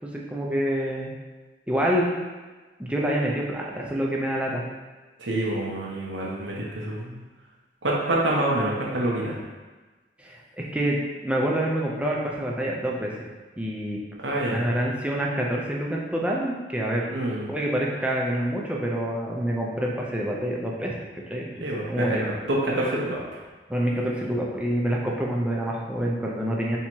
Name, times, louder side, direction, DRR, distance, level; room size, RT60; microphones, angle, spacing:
voice 1, 0.0-1.1 1.7-2.1 2.8-4.6 10.2-11.0 11.2-13.1 13.6-14.0 14.4-17.1 17.5-21.0 21.3-22.3 23.7-26.8, right 1 dB, 5° right, -3 dB, 0.5 m, -27 dB
voice 2, 5.2-7.2 7.8-9.4 14.2-14.7 17.1-17.5 21.6-23.2, right 1 dB, 85° right, -3 dB, 0.9 m, -27 dB
3.5 x 2.9 x 4.4 m, 1.3 s
head